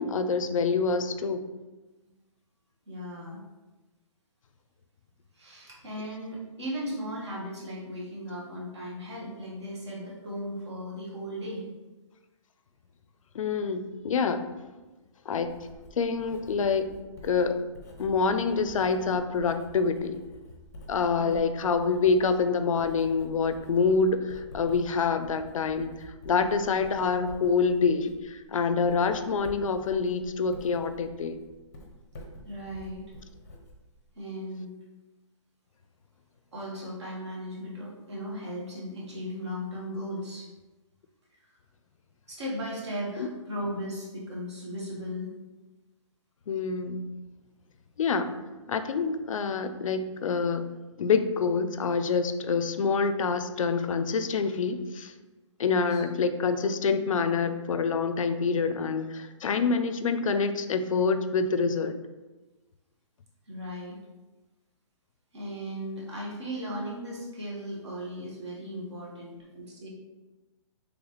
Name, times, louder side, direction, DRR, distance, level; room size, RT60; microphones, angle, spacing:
voice 1, 0.0-1.4 13.3-14.4 15.3-15.5 16.0-16.8 17.2-17.6 18.0-20.2 20.9-31.4 43.2-43.3 46.5-47.1 48.0-48.3 48.7-50.7 51.0-55.1 55.6-62.0, left 5 dB, 85° left, 9 dB, 0.4 m, -26 dB
voice 2, 2.9-3.4 5.3-11.7 21.2-21.4 32.4-33.0 34.1-34.7 36.5-40.5 42.3-45.3 55.7-56.0 63.5-64.0 65.3-69.9, equal, 60° right, -4 dB, 1.4 m, -37 dB
Writing, 15.4-34.2, left 1 dB, 30° left, 0.6 m, -49 dB
4.0 x 3.2 x 3.0 m, 1.2 s
hypercardioid pair, 175°, 17 cm